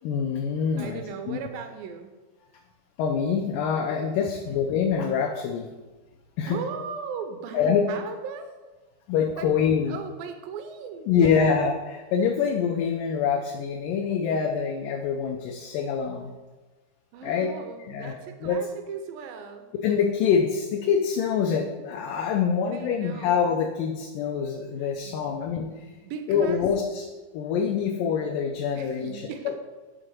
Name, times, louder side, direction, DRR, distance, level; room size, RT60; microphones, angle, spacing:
voice 1, 0.0-1.0 1.3-1.4 3.0-5.7 6.4-6.6 7.5-7.8 9.1-9.9 11.1-16.3 17.2-17.5 17.9-18.1 18.4-18.6 19.8-25.9 26.3-27.0 27.3-29.5, left 6 dB, 80° left, 2 dB, 2.0 m, -25 dB
voice 2, 0.8-2.1 6.5-8.5 9.4-11.6 17.1-19.7 22.6-23.4 24.8-25.2 25.9-26.6 28.8-29.6, right 6 dB, 80° right, 7 dB, 2.2 m, -38 dB
6.6 x 3.7 x 6.1 m, 1.2 s
omnidirectional pair, 4.1 m